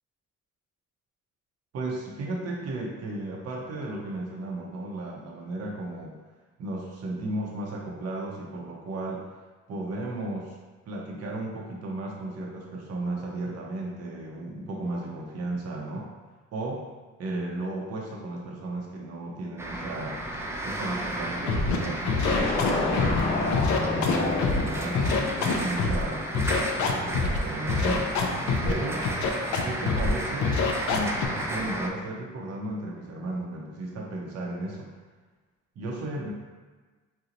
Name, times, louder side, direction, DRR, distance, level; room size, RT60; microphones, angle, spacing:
voice 1, 1.7-6.1 6.6-9.2 9.7-10.6 10.9-16.1 16.5-16.9 17.2-20.2 20.6-28.1 28.6-29.1 29.6-30.6 30.9-34.9 35.8-36.3, right 2 dB, 55° right, -1 dB, 0.5 m, -34 dB
sound 1, 19.6-31.9, right 1 dB, 10° right, 0.3 m, -33 dB
Scratching (performance technique), 21.5-21.8 22.0-23.2 23.5-24.6 24.9-26.0 26.3-27.4 27.7-28.7 29.0-29.6 29.9-30.1 30.4-31.2, left 5 dB, 70° left, 0.5 m, -25 dB
sound 2, 22.2-26.6, left 2 dB, 40° left, 0.7 m, -29 dB
2.8 x 2.0 x 3.8 m, 1.3 s
cardioid pair, 90°, 30 cm